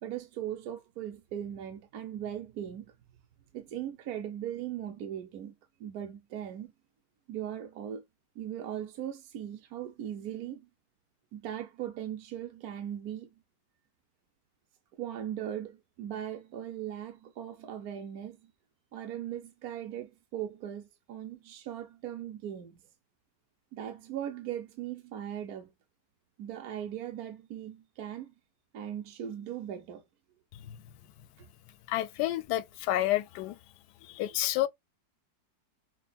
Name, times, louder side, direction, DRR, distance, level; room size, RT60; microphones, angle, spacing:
voice 1, 0.0-2.9 3.5-5.5 5.8-6.7 7.3-8.0 8.4-10.7 11.3-13.3 15.0-18.5 18.9-22.8 23.7-25.7 26.4-28.3 28.7-30.0, right 10 dB, 65° right, 1.1 m, -39 dB
voice 2, 31.9-33.6 34.0-34.7, left 14 dB, 75° left, 1.1 m, -30 dB
6.0 x 2.2 x 2.2 m
omnidirectional pair, 1.9 m